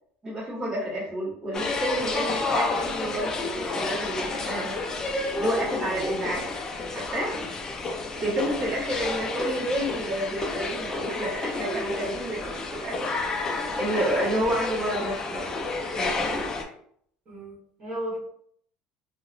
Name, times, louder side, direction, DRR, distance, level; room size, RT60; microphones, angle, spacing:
voice 1, 0.2-4.8 5.4-6.5 6.9-7.4 8.2-13.1 13.8-15.5 15.9-16.5, right 1 dB, 15° right, -8 dB, 1.2 m, -30 dB
sound 1, 1.5-16.6, left 3 dB, 20° left, 0.4 m, -30 dB
voice 2, 8.2-8.7 17.3-18.2, right 1 dB, 35° right, -5 dB, 1.1 m, -35 dB
2.8 x 2.0 x 2.4 m, 0.64 s
cardioid pair, 140°, 3 cm